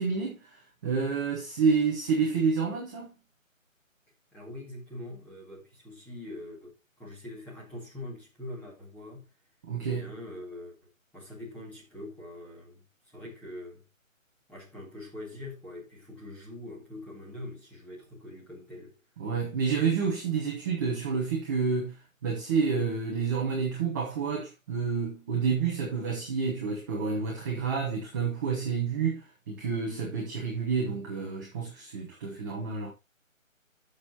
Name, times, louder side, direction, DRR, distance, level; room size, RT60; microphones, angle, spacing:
voice 1, 0.0-3.1 9.6-10.0 19.2-32.9, right 5 dB, 15° right, 1.0 m, -29 dB
voice 2, 4.3-9.3 9.8-13.8 14.5-19.0, left 1 dB, 5° left, 2.0 m, -43 dB
14.0 x 6.5 x 2.9 m
figure-of-eight pair, 155°, 41 cm